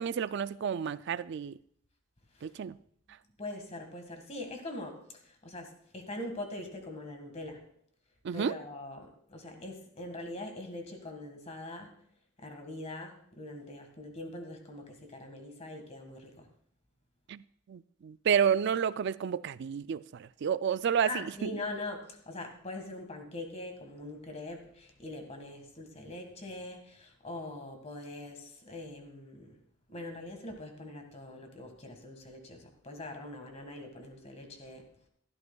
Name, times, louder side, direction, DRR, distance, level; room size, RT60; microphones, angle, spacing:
voice 1, 0.0-1.5 2.4-2.7 8.2-8.6 17.3-17.4 17.7-21.5, right 7 dB, 55° right, 0.3 m, -30 dB
voice 2, 3.4-7.6 8.3-11.9 12.4-16.5 21.0-29.5 29.9-34.8, left 2 dB, 30° left, 1.8 m, -42 dB
15.5 x 12.5 x 2.3 m
head